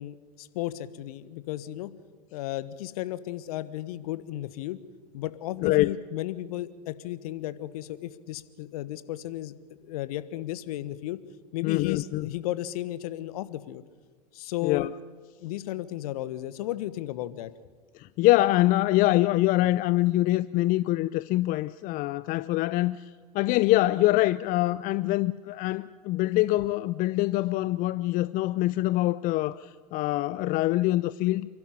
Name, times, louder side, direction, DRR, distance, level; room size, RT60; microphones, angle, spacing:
voice 1, 0.0-1.9 2.3-4.8 5.1-9.5 9.8-11.2 11.5-13.8 14.3-14.9 15.4-17.5, left 14 dB, 60° left, 1.3 m, -34 dB
voice 2, 5.6-5.9 11.6-12.3 14.6-14.9 18.0-23.0 23.3-31.5, left 17 dB, 40° left, 0.6 m, -24 dB
28.5 x 12.5 x 9.9 m
figure-of-eight pair, 85°, 21 cm